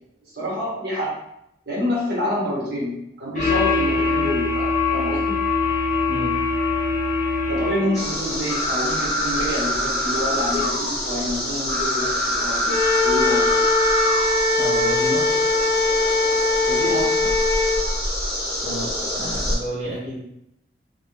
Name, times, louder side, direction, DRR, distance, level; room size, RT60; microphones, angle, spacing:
voice 1, 0.2-1.1 1.7-5.4 7.5-12.1 12.3-13.5 16.6-17.3, equal, 60° right, -6 dB, 1.1 m, -27 dB
sound 1, 3.4-8.2, left 4 dB, 45° left, 0.7 m, -22 dB
sound 2, 7.9-19.6, left 1 dB, 5° left, 1.1 m, -25 dB
Wind instrument woodwind instrument, 12.7-17.8, left 2 dB, 75° left, 1.1 m, -21 dB
voice 2, 14.6-15.4 18.6-20.2, equal, 40° right, -9 dB, 0.7 m, -30 dB
2.4 x 2.1 x 3.4 m, 0.80 s
head